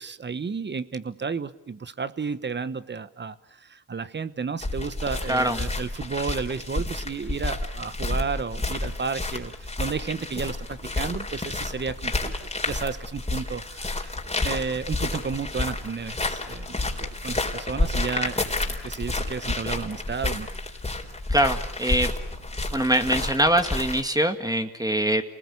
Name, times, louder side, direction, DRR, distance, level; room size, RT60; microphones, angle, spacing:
voice 1, 0.0-12.3 12.6-14.1 14.4-20.5, right 5 dB, 35° right, 15 dB, 1.2 m, -32 dB
sound 1, 4.6-24.0, left 2 dB, 20° left, 4.1 m, -30 dB
voice 2, 5.3-5.6 21.3-22.1 22.7-25.2, right 1 dB, 10° right, 7 dB, 2.0 m, -23 dB
28.0 x 20.0 x 8.5 m, 0.84 s
cardioid pair, 65°, 31 cm